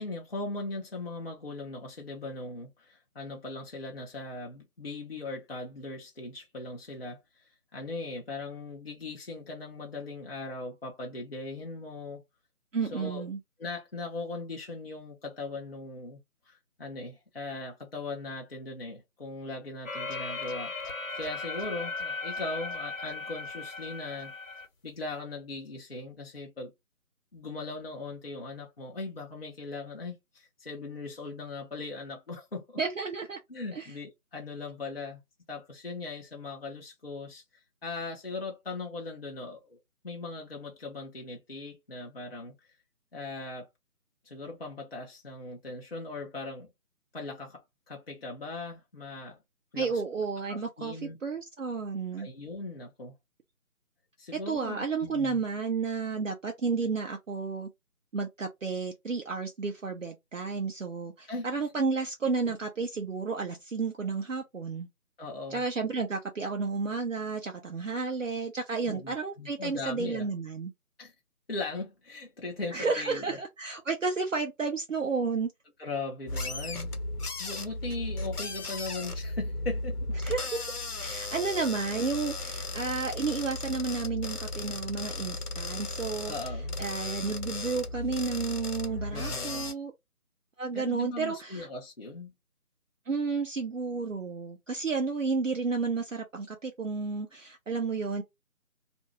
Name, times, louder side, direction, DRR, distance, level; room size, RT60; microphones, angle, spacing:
voice 1, 0.0-7.4 7.7-12.2 12.9-13.2 13.6-16.2 16.5-20.7 21.1-24.3 24.8-26.7 27.3-32.8 33.5-35.2 35.5-39.8 40.0-42.5 43.1-43.7 44.2-46.7 47.1-49.4 49.7-49.9 50.5-51.2 52.2-53.1 54.2-55.4 61.3-61.5 65.2-65.6 68.9-70.3 71.0-71.1 71.5-73.4 75.8-76.9 77.4-80.2 81.0-81.1 86.3-86.8 89.1-89.7 90.7-92.3, left 3 dB, 45° left, 0.7 m, -39 dB
voice 2, 12.7-13.4 32.8-33.4 33.7-33.9 49.8-52.3 54.5-57.7 58.1-64.9 65.5-70.7 72.7-75.5 80.2-80.7 81.0-86.3 86.8-89.9 90.6-91.7 93.1-98.2, right 4 dB, 60° right, 0.7 m, -32 dB
sound 1, 19.9-24.7, left 3 dB, 60° left, 1.0 m, -37 dB
sound 2, 76.3-89.7, left 2 dB, 85° left, 0.8 m, -35 dB
2.5 x 2.3 x 2.9 m
figure-of-eight pair, 160°, 44 cm